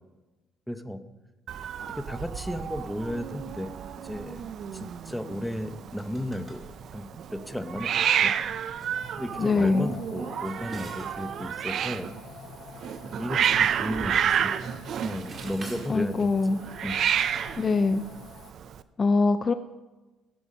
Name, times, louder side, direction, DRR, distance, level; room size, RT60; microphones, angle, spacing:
voice 1, 0.7-1.0 1.9-3.7 4.0-4.4 4.7-6.6 6.9-8.3 9.2-12.1 13.2-14.7 15.0-17.0, equal, ahead, 9 dB, 0.9 m, -34 dB
Hiss, 1.5-18.8, right 8 dB, 60° right, 0.5 m, -30 dB
sound 1, 6.0-6.6 7.3-7.4 8.3-8.5 8.8-9.0 10.2-11.6 11.8-11.9 13.0-14.7 14.9-15.9, right 2 dB, 30° right, 2.4 m, -46 dB
sound 2, 9.0-18.5, left 8 dB, 70° left, 0.8 m, -50 dB
voice 2, 9.4-9.9 15.9-16.6 17.6-18.0 19.0-19.5, left 4 dB, 35° left, 11 dB, 0.5 m, -23 dB
15.5 x 6.9 x 5.5 m, 1.2 s
supercardioid pair, 85°, 0 cm